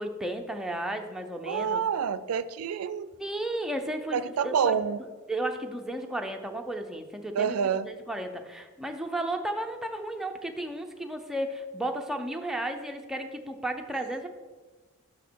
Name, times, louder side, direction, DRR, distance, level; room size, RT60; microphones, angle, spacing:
voice 1, 0.0-1.8 3.2-4.8 5.3-7.6 7.8-14.3, right 1 dB, ahead, 4 dB, 0.5 m, -33 dB
voice 2, 1.4-3.1 4.1-5.0 7.3-7.9, right 7 dB, 80° right, 15 dB, 0.4 m, -27 dB
6.2 x 5.9 x 4.6 m, 1.3 s
head